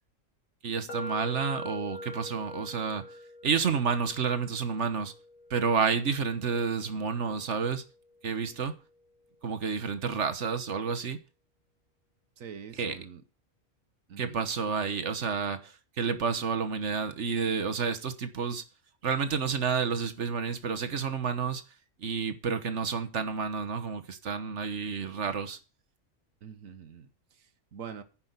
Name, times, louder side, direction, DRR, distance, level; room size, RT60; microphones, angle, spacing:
voice 1, 0.6-3.0 3.4-5.1 5.5-7.8 8.2-8.8 9.4-11.2 12.8-13.0 14.2-18.6 19.0-21.6 22.0-25.6, right 5 dB, 60° right, 1.4 m, -30 dB
sound 1, 0.9-8.7, left 1 dB, 85° left, 1.9 m, -45 dB
voice 2, 12.4-13.2 14.1-14.4 26.4-28.0, right 7 dB, 80° right, 1.5 m, -45 dB
9.7 x 6.0 x 8.0 m
omnidirectional pair, 1.4 m